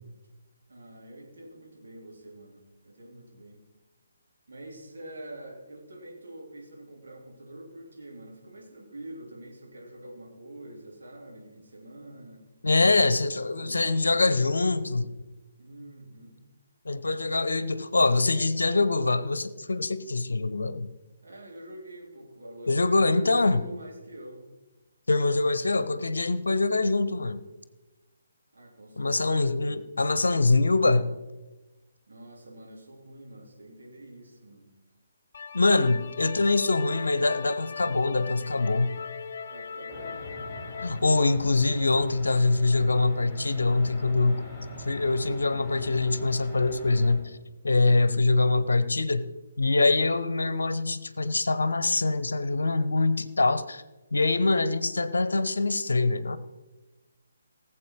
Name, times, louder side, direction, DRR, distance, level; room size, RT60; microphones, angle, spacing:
voice 1, 0.7-3.6 4.5-12.4 12.9-14.2 15.5-16.4 21.2-24.5 26.7-27.2 28.5-29.8 32.1-34.7 35.8-36.6 39.5-40.3 47.7-48.2, right 1 dB, 60° right, -1 dB, 3.4 m, -46 dB
voice 2, 12.6-15.1 16.8-20.9 22.7-23.6 25.1-27.4 29.0-31.2 35.5-38.9 40.8-44.5 44.9-47.2 47.6-49.2 49.6-53.8 54.1-56.4, left 3 dB, 70° left, 15 dB, 0.9 m, -24 dB
sound 1, 35.3-41.0, left 6 dB, 50° left, 0.5 m, -39 dB
sound 2, 39.9-47.1, left 1 dB, 5° left, 4.8 m, -42 dB
17.5 x 7.7 x 4.8 m, 1.1 s
figure-of-eight pair, 140°, 0 cm